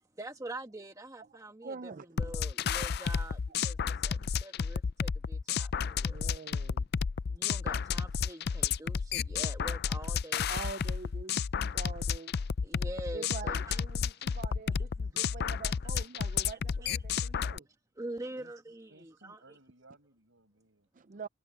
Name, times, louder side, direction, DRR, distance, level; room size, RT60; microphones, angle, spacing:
voice 1, 0.2-6.2 7.3-10.5 12.6-13.8 15.0-15.2 15.9-16.0 18.0-19.4, right 2 dB, 15° right, 1.2 m, -44 dB
voice 2, 1.6-2.3 3.5-3.6 6.0-6.9 10.5-12.3 13.1-17.7 20.9-21.3, right 4 dB, 40° right, 0.5 m, -45 dB
sound 1, 2.2-17.6, left 6 dB, 55° left, 0.4 m, -32 dB
voice 3, 18.9-20.9, right 2 dB, 75° right, 7.3 m, -60 dB
head